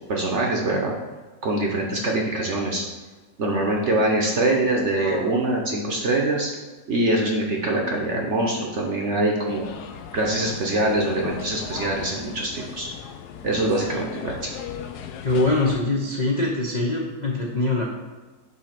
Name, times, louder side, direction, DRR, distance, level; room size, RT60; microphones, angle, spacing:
voice 1, 0.1-0.9 1.4-2.8 3.4-6.5 6.9-9.7 10.1-12.9 13.4-14.5, right 1 dB, 50° right, -1 dB, 0.9 m, -24 dB
voice 2, 5.0-5.3 15.2-17.8, left 2 dB, 50° left, -2 dB, 0.5 m, -23 dB
sound 1, 9.5-15.8, left 8 dB, 70° left, 1.0 m, -37 dB
8.1 x 2.9 x 5.8 m, 1.3 s
omnidirectional pair, 2.0 m